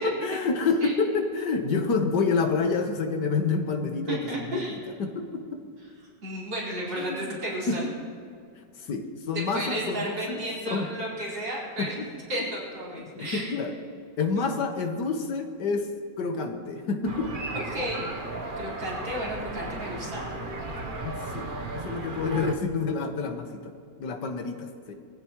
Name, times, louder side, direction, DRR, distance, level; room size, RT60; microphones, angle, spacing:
voice 1, 0.0-5.6 7.0-7.4 7.7-7.8 8.8-10.9 11.8-11.9 13.2-13.7 14.2-15.9 16.2-17.3 21.0-21.5 21.7-23.7 24.0-24.9, left 4 dB, 70° left, 5 dB, 1.8 m, -28 dB
voice 2, 4.1-4.8 6.2-7.9 9.3-11.9 12.3-13.5 14.4-14.5 17.7-18.1 18.6-20.2, right 1 dB, 85° right, -6 dB, 5.3 m, -33 dB
sound 1, 17.1-22.5, right 2 dB, 35° right, 1.0 m, -35 dB
21.5 x 15.5 x 3.1 m, 2.2 s
omnidirectional pair, 1.9 m